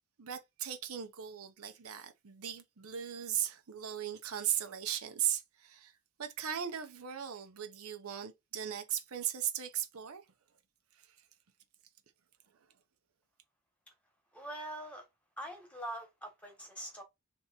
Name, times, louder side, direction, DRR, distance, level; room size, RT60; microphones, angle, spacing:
voice 1, 0.2-5.9 6.2-10.2, right 10 dB, 75° right, 0.6 m, -37 dB
voice 2, 14.3-15.0 15.4-17.0, right 1 dB, 5° left, 1.2 m, -43 dB
3.4 x 2.8 x 4.0 m
head